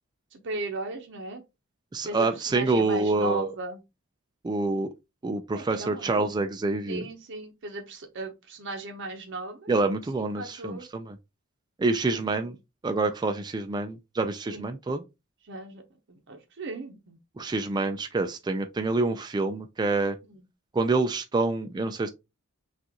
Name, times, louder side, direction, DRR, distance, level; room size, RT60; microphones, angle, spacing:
voice 1, 0.3-1.4 2.0-3.8 5.5-6.2 6.9-9.7 10.4-10.9 12.1-12.3 14.5-14.7 15.4-15.8 16.1-17.2 20.3-20.4, right 2 dB, 60° right, 0.8 m, -36 dB
voice 2, 1.9-3.5 4.4-4.9 5.2-7.0 9.7-11.2 11.8-12.6 12.8-15.0 17.4-20.2 20.7-22.1, right 3 dB, 20° right, 0.3 m, -27 dB
6.1 x 2.5 x 2.8 m
head